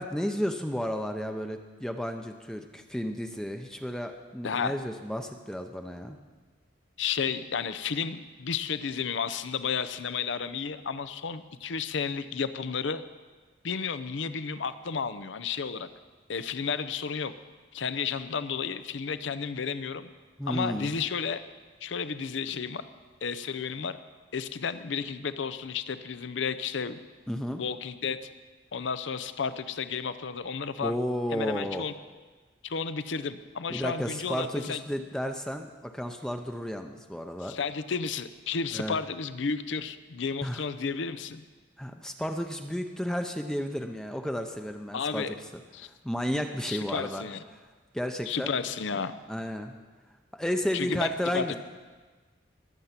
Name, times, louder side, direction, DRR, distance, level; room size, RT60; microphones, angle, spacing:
voice 1, 0.0-6.2 20.4-20.9 27.3-27.6 30.8-31.9 33.7-37.6 38.7-39.0 40.4-40.6 41.8-47.2 47.5-47.6 47.9-48.5 49.3-49.8 50.3-51.6, equal, 5° left, 5 dB, 0.6 m, -32 dB
voice 2, 4.4-4.8 7.0-13.0 13.6-15.9 16.3-17.3 17.7-20.1 20.5-21.4 21.8-22.9 23.2-24.0 24.3-27.0 27.6-28.3 28.7-31.0 31.3-31.9 32.6-34.8 37.4-41.4 44.9-45.4 45.7-45.9 46.7-47.4 48.3-49.2 50.7-51.6, left 6 dB, 80° left, 13 dB, 0.6 m, -32 dB
21.5 x 8.1 x 5.8 m, 1.4 s
head